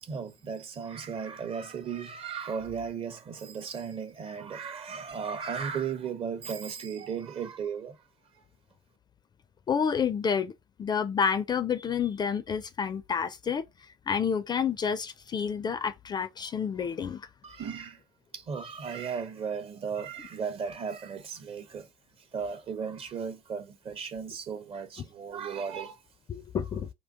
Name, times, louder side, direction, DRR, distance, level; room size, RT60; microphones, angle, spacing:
voice 1, 0.0-7.9 17.4-18.0 18.3-21.9 22.3-26.0, right 6 dB, 40° right, 0.6 m, -36 dB
voice 2, 9.7-10.5 10.8-13.6 14.1-17.3 26.3-26.9, left 7 dB, 30° left, 0.4 m, -29 dB
3.7 x 2.2 x 2.5 m
hypercardioid pair, 65°, 15 cm